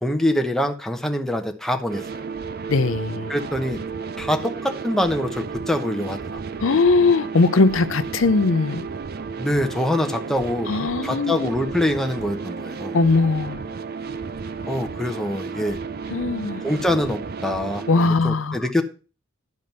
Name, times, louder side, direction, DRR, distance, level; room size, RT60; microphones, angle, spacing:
voice 1, 0.0-2.2 3.3-3.8 4.2-6.6 9.4-10.7 11.0-13.0 14.7-15.8 16.6-17.8 18.2-18.8, left 1 dB, ahead, 4 dB, 0.9 m, -24 dB
sound 1, 1.9-18.1, right 5 dB, 50° right, 0.5 m, -33 dB
voice 2, 2.7-3.3 6.6-8.8 10.7-11.5 12.9-13.7 16.1-16.6 17.9-18.6, left 3 dB, 75° left, 13 dB, 0.6 m, -20 dB
10.5 x 5.1 x 5.5 m, 0.35 s
head